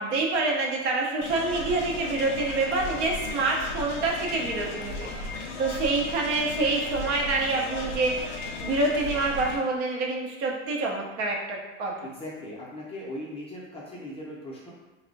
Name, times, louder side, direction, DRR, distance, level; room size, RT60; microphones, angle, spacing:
voice 1, 0.0-5.3 5.6-11.9, right 3 dB, 65° right, -1 dB, 0.6 m, -27 dB
sound 1, 1.2-9.6, left 3 dB, 60° left, 0.6 m, -36 dB
voice 2, 12.0-14.7, left 1 dB, 15° left, -6 dB, 0.5 m, -38 dB
2.5 x 2.0 x 2.5 m, 1.2 s
supercardioid pair, 110°, 37 cm